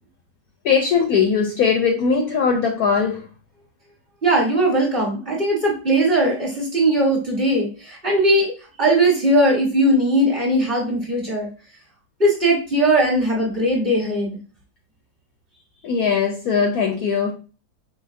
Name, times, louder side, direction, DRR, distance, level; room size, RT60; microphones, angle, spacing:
voice 1, 0.6-3.3 15.8-17.3, left 6 dB, 70° left, 2 dB, 0.9 m, -20 dB
voice 2, 4.2-8.5 8.8-11.5 12.2-14.4, right 1 dB, 35° right, -4 dB, 1.2 m, -19 dB
4.9 x 3.2 x 2.5 m, 0.36 s
omnidirectional pair, 2.0 m